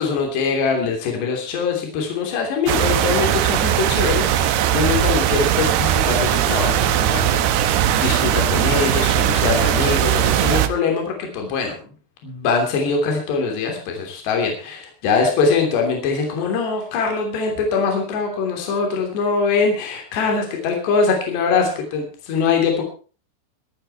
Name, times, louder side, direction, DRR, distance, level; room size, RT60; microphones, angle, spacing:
voice 1, 0.0-11.7 12.2-22.8, left 5 dB, 60° left, 2 dB, 5.1 m, -22 dB
sound 1, 2.7-10.7, right 11 dB, 70° right, 2.6 m, -19 dB
23.5 x 9.1 x 4.6 m, 0.38 s
omnidirectional pair, 5.6 m